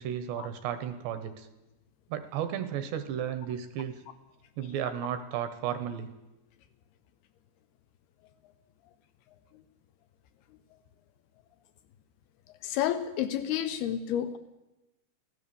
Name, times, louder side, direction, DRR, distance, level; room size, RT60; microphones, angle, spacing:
voice 1, 0.0-1.5 2.1-4.0 4.6-6.1, right 9 dB, 75° right, 10 dB, 2.8 m, -34 dB
voice 2, 12.5-14.4, left 10 dB, 85° left, 11 dB, 2.2 m, -30 dB
24.5 x 17.0 x 7.0 m, 1.0 s
omnidirectional pair, 5.7 m